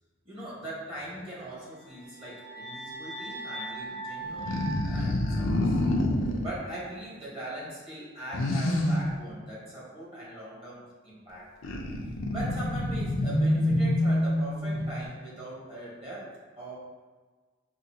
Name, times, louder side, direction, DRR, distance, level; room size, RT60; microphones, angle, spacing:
voice 1, 0.2-5.8 6.4-11.5 12.3-16.8, right 1 dB, 30° right, -7 dB, 1.4 m, -41 dB
sound 1, 1.8-6.0, right 2 dB, 10° left, 0.4 m, -40 dB
sound 2, 4.2-6.5 8.3-9.1 11.6-15.0, left 1 dB, 85° left, 0.5 m, -27 dB
5.3 x 2.5 x 2.8 m, 1.4 s
head